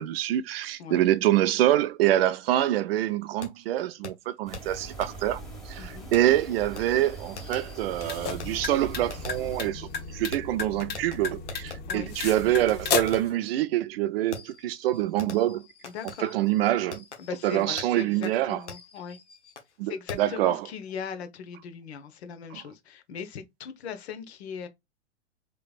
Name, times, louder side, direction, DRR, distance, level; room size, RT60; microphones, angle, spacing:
voice 1, 0.0-5.4 5.7-15.7 16.2-17.0 17.4-18.6 19.8-20.7 22.5-22.6, right 13 dB, 60° right, 0.5 m, -26 dB
Fireworks, 3.4-3.5 4.0-4.1 4.5-4.6 5.0-5.1 6.1-11.8 12.7-12.8 13.1-13.4 14.3-19.7 20.1-20.4, left 4 dB, 90° left, 1.0 m, -44 dB
sound 1, 4.5-9.7, right 2 dB, ahead, 1.5 m, -42 dB
voice 2, 5.8-6.1 11.9-12.1 15.8-16.3 17.2-19.2 19.9-24.7, left 7 dB, 70° left, 1.0 m, -39 dB
sound 2, 7.8-13.3, left 6 dB, 30° left, 1.0 m, -33 dB
3.7 x 3.3 x 2.4 m
hypercardioid pair, 105°, 34 cm